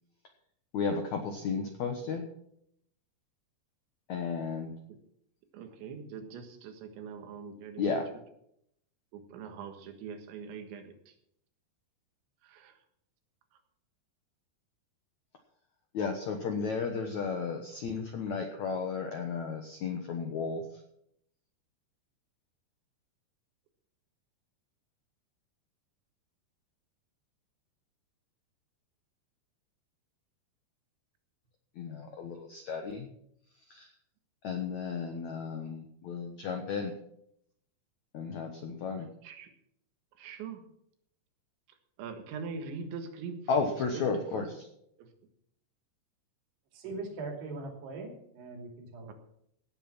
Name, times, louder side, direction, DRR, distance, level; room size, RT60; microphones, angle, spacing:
voice 1, 0.7-2.2 4.1-4.7 7.8-8.0 15.9-20.6 31.8-33.1 33.7-33.9 34.4-36.9 38.1-39.1 43.5-44.6, left 5 dB, 75° left, 5 dB, 1.7 m, -33 dB
voice 2, 5.5-8.2 9.3-10.9 12.4-12.8 39.2-39.5 40.2-40.6 42.0-43.4 43.9-44.1 44.3-44.5 45.0-45.1, right 5 dB, 90° right, 6 dB, 3.9 m, -42 dB
voice 3, 46.7-49.1, right 3 dB, 70° right, 2 dB, 4.7 m, -41 dB
17.0 x 8.2 x 5.9 m, 0.73 s
omnidirectional pair, 5.1 m